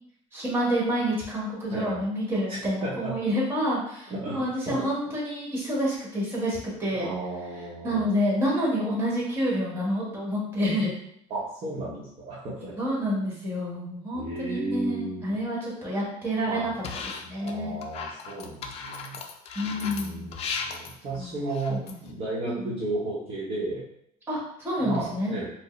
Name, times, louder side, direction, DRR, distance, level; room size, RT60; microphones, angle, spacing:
voice 1, 0.3-7.1 7.8-10.9 12.8-16.7 17.2-17.7 19.5-20.3 21.2-21.3 21.7-22.0 22.4-22.8 24.3-25.3, equal, 15° right, -5 dB, 1.2 m, -28 dB
voice 2, 2.5-3.1 4.1-4.4 4.7-4.8 7.0-8.0 11.3-12.8 14.1-15.3 16.4-16.7 17.4-19.2 19.6-23.8 24.8-25.5, right 2 dB, 40° right, -7 dB, 0.8 m, -34 dB
sound 1, 16.8-17.5 17.8-22.1, left 5 dB, 45° left, 0.4 m, -36 dB
4.6 x 2.0 x 3.1 m, 0.71 s
cardioid pair, 155°, 14 cm